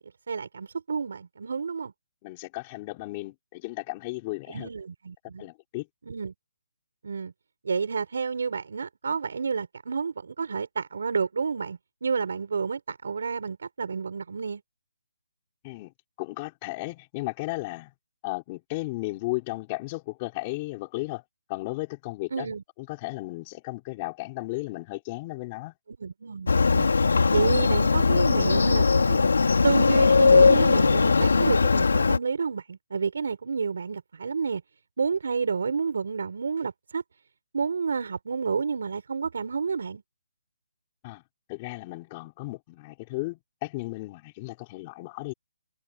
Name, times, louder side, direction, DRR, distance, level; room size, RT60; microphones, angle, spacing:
voice 1, 0.0-1.9 4.5-5.5 6.1-6.3 7.0-7.3 7.6-14.6 22.3-22.6 26.0-26.9 27.3-29.2 29.6-34.6 35.0-37.0 37.5-40.0, right 5 dB, 60° right, 5.5 m, -30 dB
voice 2, 2.2-4.7 5.4-5.9 15.6-17.9 18.2-21.2 21.5-22.5 22.8-25.7 41.0-41.2 41.5-45.3, left 22 dB, 20° left, 5.1 m, -35 dB
Motorcycle, 26.5-32.2, left 4 dB, 80° left, 3.5 m, -20 dB
hypercardioid pair, 170°, 0 cm